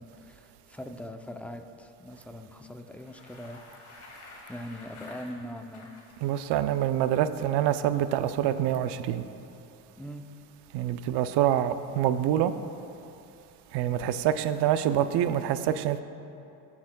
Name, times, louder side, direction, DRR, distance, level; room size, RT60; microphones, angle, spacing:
voice 1, 0.0-3.6 4.5-5.9 10.0-10.3, equal, 5° left, 6 dB, 0.5 m, -41 dB
Bicycle, 2.8-6.1, left 2 dB, 45° left, 1.7 m, -49 dB
voice 2, 6.2-9.2 10.7-12.5 13.7-16.0, right 11 dB, 70° right, 12 dB, 0.5 m, -26 dB
15.5 x 5.9 x 2.2 m, 2.8 s
supercardioid pair, 85°, 42 cm